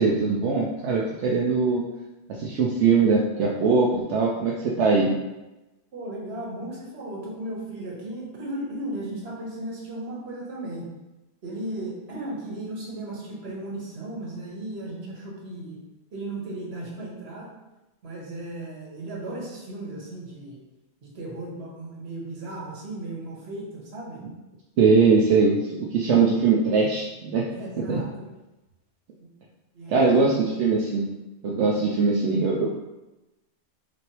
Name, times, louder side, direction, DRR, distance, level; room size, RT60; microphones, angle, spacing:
voice 1, 0.0-1.8 2.4-5.1 24.8-27.5 27.9-28.0 29.9-31.0 31.4-32.7, right 4 dB, 80° right, -4 dB, 0.9 m, -21 dB
voice 2, 5.9-10.9 11.4-15.8 16.1-17.5 18.0-20.6 21.0-24.2 27.5-28.3 29.7-30.1 31.7-31.8, right 1 dB, 60° right, -3 dB, 1.4 m, -36 dB
6.0 x 2.7 x 3.0 m, 1.0 s
omnidirectional pair, 1.2 m